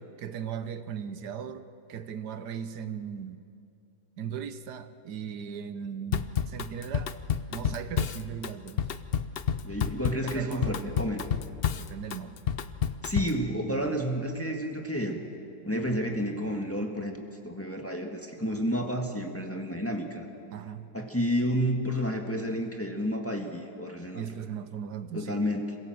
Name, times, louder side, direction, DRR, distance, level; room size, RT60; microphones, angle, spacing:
voice 1, 0.2-3.4 4.2-7.1 7.5-8.9 10.2-11.0 11.8-12.4 20.5-20.9 24.1-25.5, right 8 dB, 80° right, 11 dB, 1.4 m, -38 dB
Drum kit / Drum, 6.1-13.4, left 8 dB, 60° left, 0.6 m, -30 dB
voice 2, 9.6-11.2 13.0-15.2 15.6-20.2 20.9-24.2 25.1-25.8, equal, 10° left, 2 dB, 1.6 m, -30 dB
26.5 x 17.0 x 7.8 m, 2.5 s
omnidirectional pair, 1.7 m